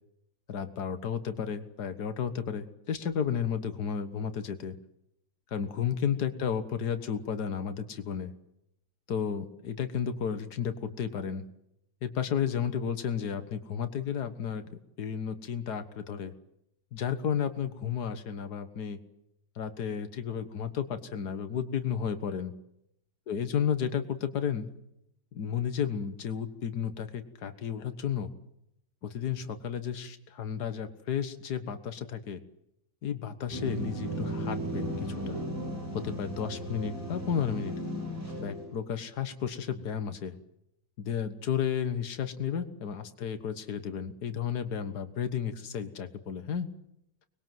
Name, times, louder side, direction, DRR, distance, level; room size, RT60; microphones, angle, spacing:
voice 1, 0.5-4.8 5.5-8.3 9.1-11.4 12.0-14.7 15.0-16.3 16.9-19.0 19.6-22.5 23.3-24.7 25.3-28.3 29.0-32.4 33.0-35.4 36.0-37.7 38.4-40.4 41.0-46.7, left 7 dB, 75° left, 10 dB, 1.9 m, -32 dB
sound 1, 33.5-38.8, right 1 dB, 30° right, 7.8 m, -35 dB
24.5 x 21.0 x 7.7 m, 0.79 s
omnidirectional pair, 1.7 m